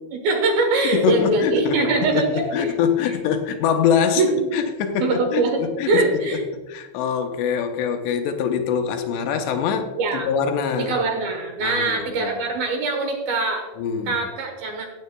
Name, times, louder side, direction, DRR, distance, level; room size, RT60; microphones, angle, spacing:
voice 1, 0.1-2.8 3.1-3.2 4.1-4.5 5.0-5.6 5.9-6.4 10.0-10.3 10.8-13.7 14.1-14.9, right 3 dB, 70° right, 3 dB, 2.6 m, -22 dB
voice 2, 0.9-1.8 2.1-4.2 4.5-6.4 6.7-10.9 11.6-12.4 13.8-14.2, left 7 dB, 80° left, 6 dB, 2.8 m, -24 dB
16.0 x 8.0 x 2.2 m, 1.2 s
omnidirectional pair, 5.0 m